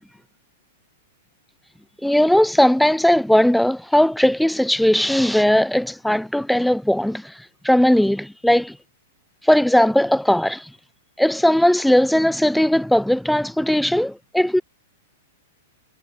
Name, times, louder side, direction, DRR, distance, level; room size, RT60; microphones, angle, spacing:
voice 1, 2.0-8.8 9.4-10.7 11.2-14.6, left 1 dB, ahead, 4.0 m, -18 dB
figure-of-eight pair, 105°, 0 cm